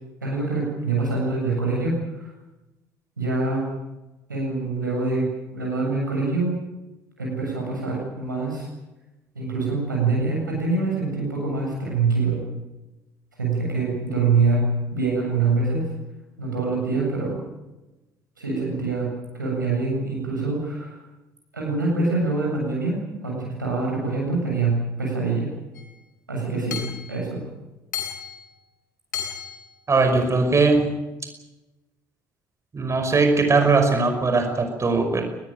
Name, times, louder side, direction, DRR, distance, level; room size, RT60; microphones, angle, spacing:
voice 1, 0.2-2.3 3.2-3.7 4.3-6.5 7.2-8.7 9.3-12.4 13.4-14.6 14.9-15.9 16.4-17.4 18.4-21.0 21.5-23.0 23.2-25.5 26.3-26.8 27.1-27.4, right 3 dB, 90° right, -2 dB, 7.4 m, -25 dB
Hammer / Chink clink, 25.8-25.9 26.7-27.1 27.9-28.4 29.1-29.6, left 8 dB, 80° left, 3.6 m, -32 dB
voice 2, 29.9-30.9 32.7-35.2, right 3 dB, 30° right, 6 dB, 5.5 m, -20 dB
23.0 x 20.0 x 9.2 m, 1.0 s
figure-of-eight pair, 55°, 10 cm